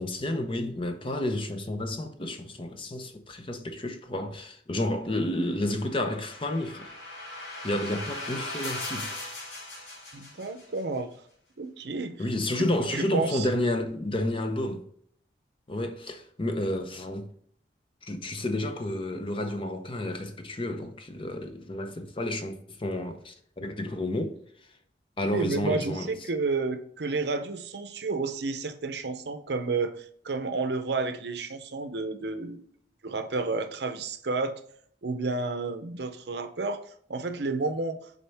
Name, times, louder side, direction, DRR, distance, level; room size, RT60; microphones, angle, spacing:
voice 1, 0.0-6.9 7.6-9.2 12.2-14.8 15.7-17.3 18.0-24.4 25.2-26.1, left 1 dB, 30° left, 0.7 m, -31 dB
sound 1, 5.5-10.8, left 2 dB, 90° left, 2.7 m, -39 dB
voice 2, 10.1-11.1 11.6-12.2 12.5-13.5 25.3-32.6 33.0-34.6 35.0-36.8 37.1-38.0, right 3 dB, 70° right, 0.7 m, -31 dB
7.4 x 4.2 x 3.5 m
head